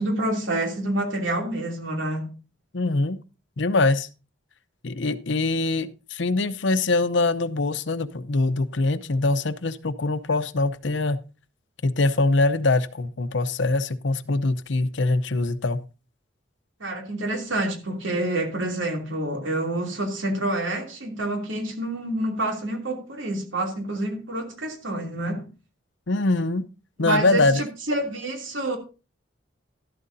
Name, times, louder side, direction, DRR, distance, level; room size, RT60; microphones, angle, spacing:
voice 1, 0.0-2.3 16.8-25.5 27.0-28.8, right 1 dB, 80° right, 2.9 m, -28 dB
voice 2, 2.7-3.2 3.6-4.1 4.8-11.2 11.8-15.8 26.1-26.6 27.0-27.6, left 3 dB, 65° left, 0.7 m, -23 dB
12.5 x 12.5 x 2.7 m
head